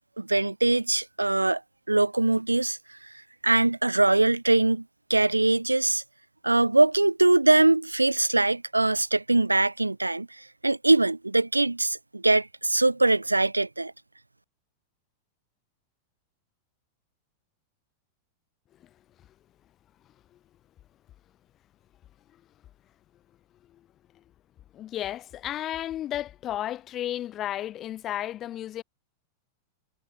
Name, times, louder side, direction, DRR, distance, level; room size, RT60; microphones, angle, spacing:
voice 1, 0.2-1.6 1.9-2.8 3.4-4.8 5.1-6.0 6.4-13.9, right 2 dB, 85° right, 1.9 m, -22 dB
voice 2, 24.7-28.8, left 12 dB, 30° left, 1.2 m, -33 dB
figure-of-eight pair, 90°, 0 cm